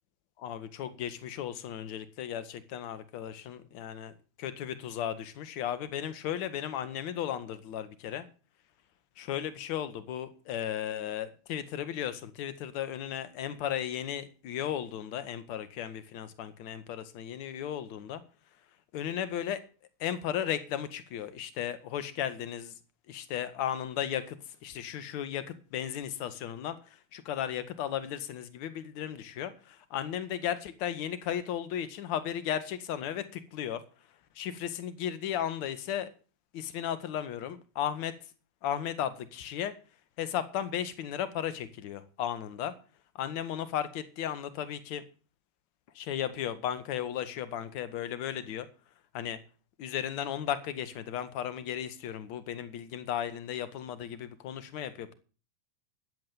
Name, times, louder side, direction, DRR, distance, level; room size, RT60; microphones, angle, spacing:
voice 1, 0.4-8.3 9.2-18.2 18.9-19.6 20.0-22.7 23.1-24.4 24.6-26.8 27.1-33.8 34.3-36.1 36.5-38.1 38.6-39.7 40.2-42.7 43.1-45.0 45.9-48.7 49.1-49.4 49.8-55.1, left 10 dB, 45° left, 14 dB, 1.6 m, -35 dB
12.5 x 8.2 x 7.3 m, 0.38 s
figure-of-eight pair, 90°, 0 cm